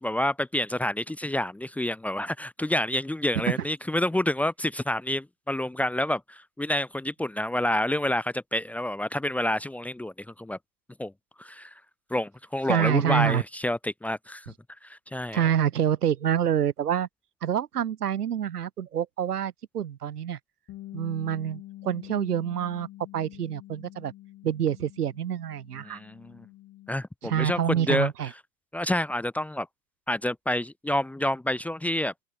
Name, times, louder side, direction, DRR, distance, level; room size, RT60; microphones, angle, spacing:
voice 1, 0.0-10.6 11.0-11.1 11.4-11.7 12.1-14.5 14.8-15.4 25.8-26.5 26.9-28.1 28.7-29.7 30.1-32.1, left 1 dB, 5° left, 2.0 m, -28 dB
voice 2, 12.7-13.4 15.3-17.1 17.4-20.4 20.9-22.9 23.1-24.1 24.4-26.0 27.2-28.3, right 9 dB, 65° right, 3.7 m, -27 dB
Bass guitar, 20.7-26.9, left 15 dB, 25° left, 7.6 m, -46 dB
open air
hypercardioid pair, 125°, 49 cm